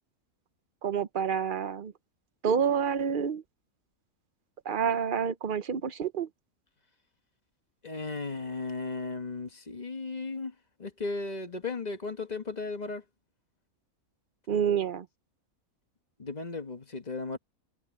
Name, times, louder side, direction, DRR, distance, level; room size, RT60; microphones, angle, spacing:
voice 1, 0.8-1.9 2.4-3.4 4.7-6.3 14.5-15.1, right 7 dB, 50° right, 0.7 m, -28 dB
voice 2, 7.8-13.0 16.2-17.4, left 3 dB, 30° left, 1.5 m, -36 dB
omnidirectional pair, 1.5 m